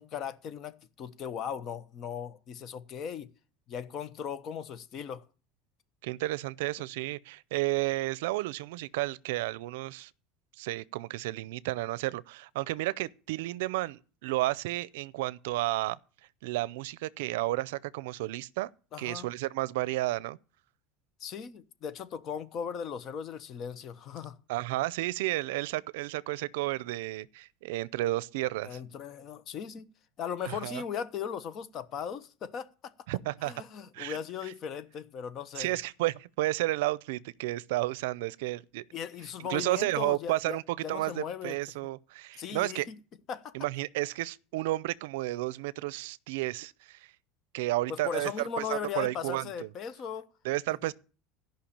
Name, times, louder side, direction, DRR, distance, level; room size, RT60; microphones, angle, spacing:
voice 1, 0.0-3.3 3.7-5.3 18.9-19.3 21.2-24.4 28.6-29.9 30.2-32.9 33.4-35.7 38.9-41.6 42.4-43.0 43.3-43.5 47.9-50.3, left 7 dB, 40° left, 1.0 m, -38 dB
voice 2, 6.0-10.1 10.6-16.0 16.4-18.7 19.0-20.4 24.5-28.8 30.5-30.8 33.1-33.5 33.9-34.2 35.6-38.8 39.5-40.6 40.9-42.9 43.5-47.1 47.5-49.7 50.4-50.9, right 18 dB, 85° right, 0.5 m, -32 dB
13.0 x 5.7 x 8.7 m
supercardioid pair, 135°, 0 cm